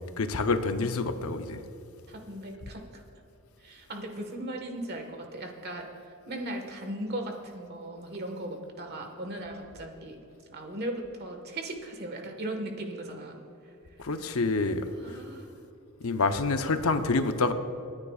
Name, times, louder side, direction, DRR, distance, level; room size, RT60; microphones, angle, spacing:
voice 1, 0.2-1.6 14.0-15.2 16.0-17.5, left 3 dB, 70° left, 8 dB, 0.7 m, -27 dB
voice 2, 2.1-3.0 3.6-5.9 6.3-10.2 10.5-13.4 15.0-15.5, right 1 dB, 45° right, 4 dB, 1.5 m, -37 dB
28.0 x 9.7 x 2.4 m, 2.7 s
head